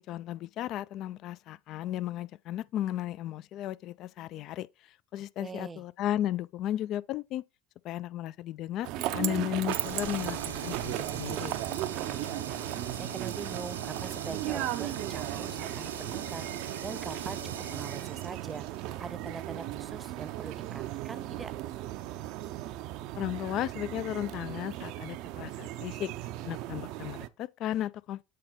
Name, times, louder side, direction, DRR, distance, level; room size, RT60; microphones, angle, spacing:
voice 1, 0.0-4.7 5.1-7.4 7.8-11.5 23.2-26.1 26.4-28.2, left 12 dB, 55° left, 0.4 m, -34 dB
voice 2, 5.4-5.8 11.9-21.5, right 5 dB, 25° right, 0.7 m, -43 dB
sound 1, 8.8-27.3, right 15 dB, 60° right, 0.5 m, -36 dB
sound 2, 9.6-19.7, right 5 dB, 85° right, 1.2 m, -42 dB
7.6 x 4.0 x 3.7 m
hypercardioid pair, 75°, 0 cm